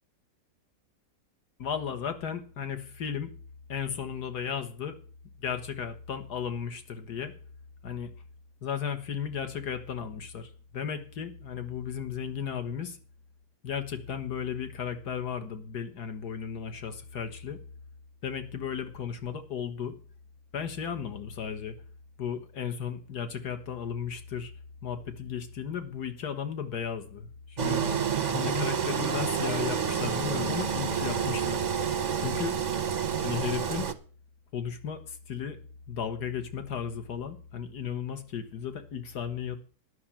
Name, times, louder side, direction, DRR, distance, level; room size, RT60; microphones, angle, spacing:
voice 1, 1.6-3.3 3.7-5.0 5.4-7.3 7.8-8.1 8.6-13.0 13.6-17.6 18.2-20.0 20.5-21.8 22.2-24.5 24.8-27.8 28.3-31.6 32.2-32.6 33.2-33.9 34.5-35.6 35.9-39.6, left 7 dB, 75° left, 8 dB, 1.9 m, -35 dB
Engine, 27.6-33.9, right 7 dB, 40° right, 0.6 m, -29 dB
10.5 x 6.4 x 8.7 m, 0.40 s
omnidirectional pair, 1.7 m